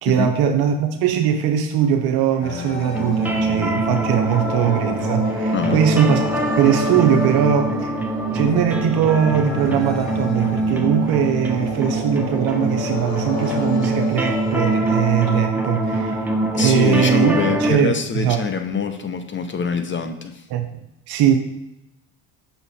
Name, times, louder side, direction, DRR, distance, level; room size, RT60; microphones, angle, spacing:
voice 1, 0.0-6.2 6.6-7.9 8.3-16.2 16.5-18.4 20.5-20.7 21.1-21.4, right 9 dB, 65° right, 5 dB, 0.8 m, -20 dB
sound 1, 2.4-15.4, left 3 dB, 75° left, 1.8 m, -31 dB
sound 2, 2.9-17.7, right 2 dB, 5° right, 1.0 m, -24 dB
voice 2, 5.5-5.8 16.6-20.4, left 6 dB, 30° left, 8 dB, 0.7 m, -24 dB
5.8 x 5.6 x 4.2 m, 0.86 s
supercardioid pair, 80°, 40 cm